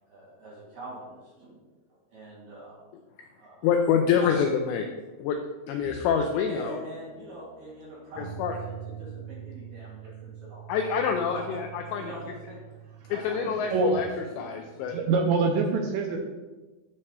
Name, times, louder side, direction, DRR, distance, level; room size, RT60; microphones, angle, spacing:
voice 1, 0.1-1.6 1.9-2.8 3.3-3.7 4.2-4.3 6.5-8.2 8.6-10.6 11.3-11.6 11.9-12.6 13.1-14.8, right 1 dB, 50° right, -6 dB, 2.5 m, -43 dB
voice 2, 3.6-4.9 5.2-5.4 5.7-6.8 8.2-8.6 10.7-12.1 13.1-15.0, left 7 dB, 85° left, 4 dB, 2.5 m, -26 dB
Bowed string instrument, 5.8-9.3, left 1 dB, 70° left, 2.9 m, -52 dB
sound 1, 8.1-15.0, right 9 dB, 25° right, 1.4 m, -44 dB
voice 3, 13.5-14.0 14.9-16.2, right 4 dB, 80° right, 2 dB, 2.7 m, -25 dB
9.8 x 3.3 x 5.5 m, 1.2 s
omnidirectional pair, 5.6 m